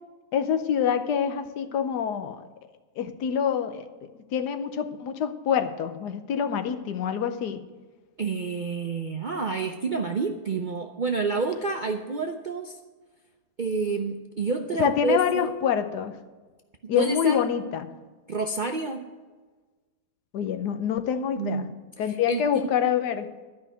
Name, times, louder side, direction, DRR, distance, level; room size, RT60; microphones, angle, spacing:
voice 1, 0.3-2.4 3.0-3.8 4.3-7.6 14.8-16.2 16.9-17.9 20.3-21.7 22.0-23.3, left 8 dB, 85° left, 8 dB, 1.4 m, -26 dB
voice 2, 8.2-12.8 13.6-15.5 16.8-17.5 18.3-19.1 21.4-22.7, right 4 dB, 60° right, 4 dB, 0.5 m, -29 dB
12.5 x 5.6 x 9.1 m, 1.3 s
omnidirectional pair, 1.7 m